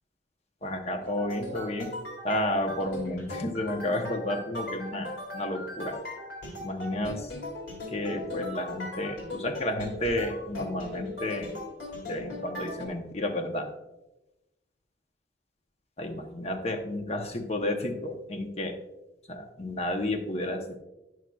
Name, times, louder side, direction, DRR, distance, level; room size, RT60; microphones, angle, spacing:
voice 1, 0.6-1.9 2.2-6.0 6.6-7.3 7.9-11.5 12.0-13.7 16.0-18.8 19.3-20.8, left 1 dB, 35° left, 5 dB, 0.7 m, -31 dB
sound 1, 1.0-12.9, left 1 dB, 80° left, 2.1 m, -39 dB
10.5 x 6.2 x 2.3 m, 0.99 s
head